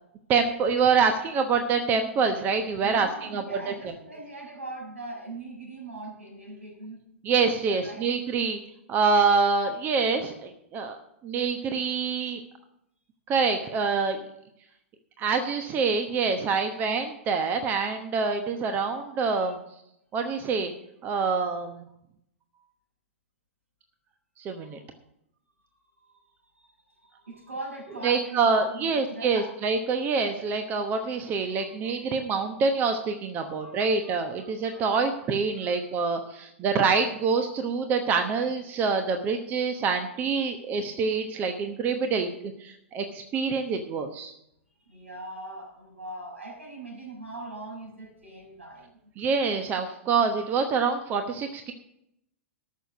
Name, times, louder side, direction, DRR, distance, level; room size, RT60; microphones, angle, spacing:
voice 1, 0.3-3.7 7.2-8.6 8.9-11.0 11.2-12.4 13.3-14.2 15.2-19.6 20.1-20.7 21.0-21.8 24.4-24.8 28.0-42.3 42.6-44.3 49.2-51.7, right 5 dB, 25° right, 7 dB, 1.0 m, -26 dB
voice 2, 2.8-7.0 7.5-8.0 19.4-19.5 26.0-29.5 31.5-32.2 33.4-35.2 35.5-35.9 36.2-36.3 44.9-48.9, right 2 dB, 80° right, -1 dB, 5.7 m, -42 dB
13.5 x 6.6 x 7.2 m, 0.78 s
figure-of-eight pair, 105°, 7 cm